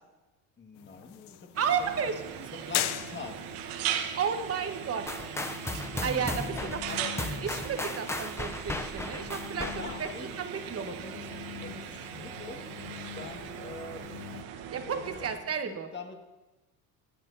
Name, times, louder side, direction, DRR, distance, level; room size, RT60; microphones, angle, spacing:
voice 1, 0.6-1.5 2.6-3.3 6.5-7.1 9.7-10.4 10.8-11.3 11.6-12.7 13.1-14.0 14.8-16.2, left 4 dB, 25° left, 3 dB, 1.8 m, -43 dB
sound 1, 0.7-14.4, left 13 dB, 65° left, 0.8 m, -42 dB
sound 2, 1.5-15.4, right 9 dB, 85° right, 1.2 m, -39 dB
voice 2, 1.6-2.1 4.2-5.0 6.0-6.8 7.4-10.1 10.4-10.9 14.7-15.9, right 7 dB, 35° right, 7 dB, 1.2 m, -32 dB
sound 3, 5.1-10.2, left 2 dB, 5° left, 0.5 m, -36 dB
24.5 x 9.1 x 2.7 m, 1.1 s
supercardioid pair, 105°, 43 cm